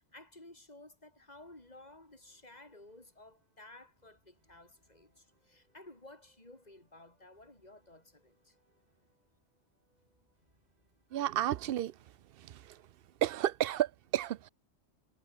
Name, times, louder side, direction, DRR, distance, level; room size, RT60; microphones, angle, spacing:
voice 1, 0.0-8.6, left 2 dB, 35° left, 5.1 m, -55 dB
sound 1, 1.3-13.3, right 1 dB, 35° right, 7.6 m, -76 dB
voice 2, 11.1-11.9 12.4-12.8 13.2-14.5, right 12 dB, 60° right, 0.7 m, -32 dB
omnidirectional pair, 1.2 m